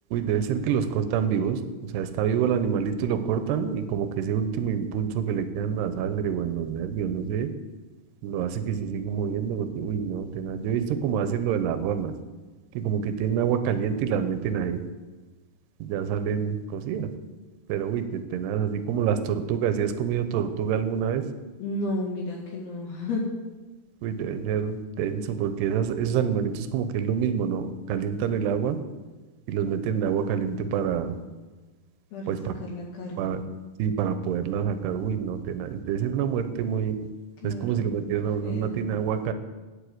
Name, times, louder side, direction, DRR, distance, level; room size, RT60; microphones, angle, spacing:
voice 1, 0.1-7.5 8.2-12.1 12.7-14.8 15.8-17.1 17.7-21.2 24.0-28.8 29.5-31.2 32.3-32.6 33.2-33.4 33.8-37.0 37.4-39.3, right 8 dB, 90° right, 10 dB, 2.9 m, -27 dB
voice 2, 21.6-23.2 32.1-32.3 32.7-33.3 37.4-38.2 38.4-38.8, left 2 dB, 75° left, -5 dB, 4.0 m, -32 dB
9.1 x 8.2 x 7.9 m, 1.2 s
omnidirectional pair, 4.7 m